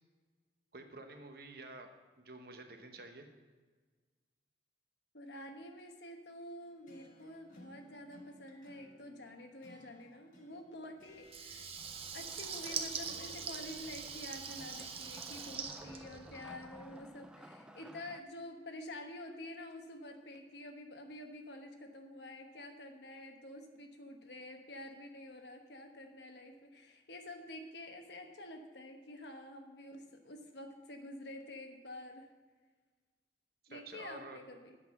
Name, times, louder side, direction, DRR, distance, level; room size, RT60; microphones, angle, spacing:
voice 1, 0.7-1.9 2.2-3.3 33.6-34.4, right 2 dB, 55° right, 5 dB, 1.0 m, -50 dB
voice 2, 5.1-11.7 12.1-32.3 33.7-34.8, left 1 dB, 75° left, 4 dB, 1.1 m, -48 dB
sound 1, 6.6-15.2, left 1 dB, 45° left, 1.4 m, -62 dB
Water tap faucet / Liquid, 11.2-16.7, right 6 dB, 35° right, 0.7 m, -43 dB
Wood, 11.8-18.2, right 1 dB, 5° right, 0.3 m, -56 dB
8.2 x 5.9 x 7.5 m, 1.4 s
head